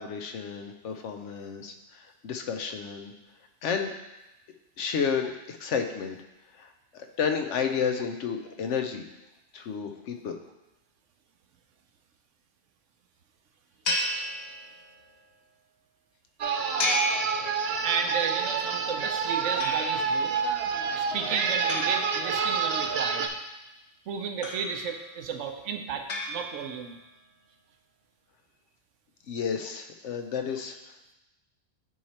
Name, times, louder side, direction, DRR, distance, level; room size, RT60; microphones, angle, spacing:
voice 1, 0.0-3.1 3.6-3.9 4.8-6.2 6.5-9.1 9.5-10.4 29.3-30.8, left 6 dB, 80° left, 6 dB, 1.0 m, -31 dB
sound 1, 13.8-15.1 16.8-18.1 19.6-20.3 21.7-22.8 24.4-25.1 26.1-27.0, left 1 dB, 50° left, 1.0 m, -33 dB
sound 2, 16.4-23.3, right 6 dB, 65° right, 0.8 m, -28 dB
voice 2, 17.5-20.3 20.9-23.3 24.1-27.0, right 6 dB, 85° right, 5 dB, 1.0 m, -33 dB
9.5 x 3.2 x 4.2 m, 0.96 s
omnidirectional pair, 1.2 m